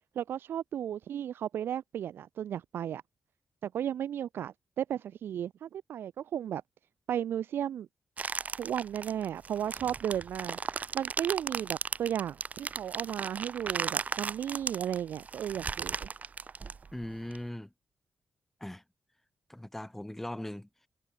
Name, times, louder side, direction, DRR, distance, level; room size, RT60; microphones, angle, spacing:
voice 1, 0.2-3.0 3.6-6.6 7.1-7.9 8.6-10.6 10.9-16.1, right 10 dB, 90° right, 0.3 m, -34 dB
sound 1, 8.2-17.4, right 5 dB, 45° right, 0.6 m, -36 dB
voice 2, 16.9-17.7 18.6-18.8 19.5-20.9, left 1 dB, 5° left, 0.7 m, -40 dB
cardioid pair, 100°, 4 cm